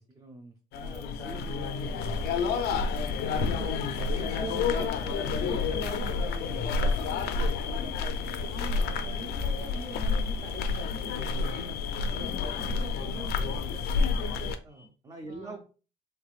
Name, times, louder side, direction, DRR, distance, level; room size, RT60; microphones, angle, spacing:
voice 1, 0.0-2.4 3.4-3.7 4.0-8.5 11.8-12.0 14.6-15.6, right 2 dB, 20° right, 3 dB, 0.4 m, -44 dB
sound 1, 0.7-14.6, left 4 dB, 85° left, 0.4 m, -29 dB
sound 2, 1.1-6.5, left 1 dB, 90° right, 1.6 m, -50 dB
voice 2, 4.0-5.7 8.5-14.5 15.3-15.6, right 2 dB, 45° right, 2 dB, 1.2 m, -45 dB
3.4 x 3.2 x 2.4 m, 0.36 s
cardioid pair, 160°, 16 cm